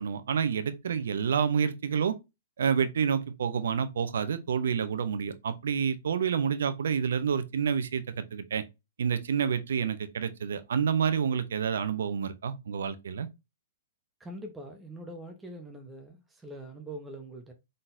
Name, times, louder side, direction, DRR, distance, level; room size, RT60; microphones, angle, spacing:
voice 1, 0.0-2.2 2.6-8.6 9.0-13.3, right 7 dB, 70° right, 0.6 m, -28 dB
voice 2, 14.2-17.5, right 1 dB, 10° right, 0.8 m, -43 dB
3.9 x 3.9 x 2.6 m
hypercardioid pair, 120°, 0 cm